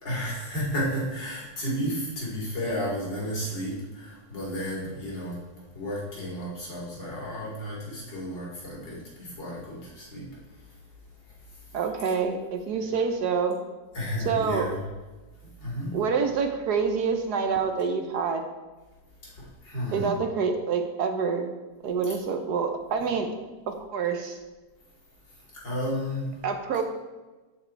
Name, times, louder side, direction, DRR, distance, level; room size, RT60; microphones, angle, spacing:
voice 1, 0.0-5.4 5.7-10.3 11.5-11.6 12.1-12.2 13.9-14.8 15.6-15.9 19.2-20.1 25.5-26.3, equal, 80° left, -7 dB, 3.9 m, -32 dB
voice 2, 11.7-13.6 14.2-14.7 15.9-18.4 19.9-21.5 21.8-23.3 23.7-24.4 26.4-26.8, right 5 dB, 65° right, 6 dB, 1.3 m, -27 dB
13.0 x 4.6 x 4.5 m, 1.2 s
omnidirectional pair, 1.9 m